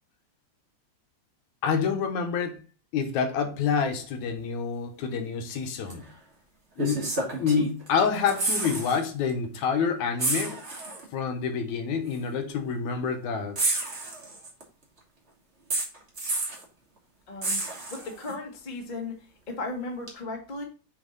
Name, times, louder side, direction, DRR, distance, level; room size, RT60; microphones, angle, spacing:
voice 1, 1.6-2.6 2.9-6.0 6.8-7.0 7.4-10.6 11.1-13.6, left 6 dB, 80° left, 5 dB, 2.2 m, -27 dB
sound 1, 5.9-6.0 6.8-7.9 8.1-9.0 9.3-9.4 10.2-11.0 12.1-12.2 13.6-14.6 15.7-16.6 17.4-18.3 20.1-20.2, right 2 dB, 45° right, 0.8 m, -30 dB
voice 2, 17.3-17.6 17.9-20.6, left 2 dB, 35° left, 0 dB, 0.7 m, -36 dB
6.8 x 3.6 x 3.8 m, 0.36 s
omnidirectional pair, 3.3 m